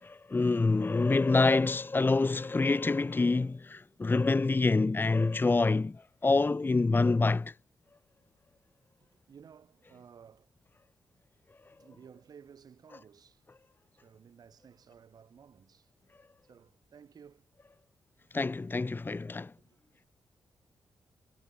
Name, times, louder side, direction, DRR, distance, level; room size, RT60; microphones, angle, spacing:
voice 1, 0.0-7.5 18.3-19.5, left 3 dB, 30° left, 0.8 m, -26 dB
voice 2, 9.3-10.5 11.8-13.4 14.0-15.9 16.5-17.4 18.2-18.6 19.6-19.8, right 7 dB, 65° right, 6.3 m, -56 dB
supercardioid pair, 50°, 7 cm